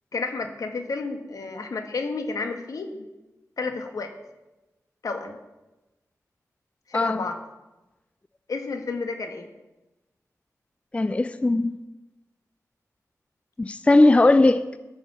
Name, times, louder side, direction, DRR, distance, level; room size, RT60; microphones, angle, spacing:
voice 1, 0.1-3.1 3.6-4.1 5.0-5.4 6.9-7.4 8.5-9.5, left 4 dB, 75° left, 5 dB, 1.4 m, -31 dB
voice 2, 6.9-7.2 10.9-11.7 13.6-14.6, left 2 dB, 20° left, 12 dB, 0.4 m, -18 dB
14.0 x 5.0 x 7.2 m, 1.0 s
wide cardioid pair, 95°, 6 cm